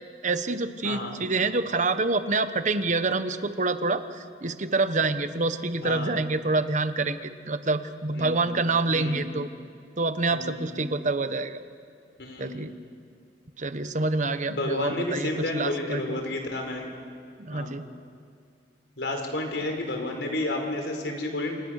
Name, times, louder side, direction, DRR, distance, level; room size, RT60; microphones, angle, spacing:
voice 1, 0.2-9.5 10.0-11.6 12.4-12.7 13.6-16.2 17.4-17.8, right 3 dB, 45° right, 11 dB, 1.2 m, -27 dB
voice 2, 5.8-6.1 8.1-8.5 8.9-9.2 10.3-10.7 12.2-12.6 14.5-16.9 17.5-17.7 19.0-21.5, left 2 dB, 80° left, 3 dB, 4.7 m, -31 dB
28.0 x 27.5 x 6.6 m, 2.2 s
head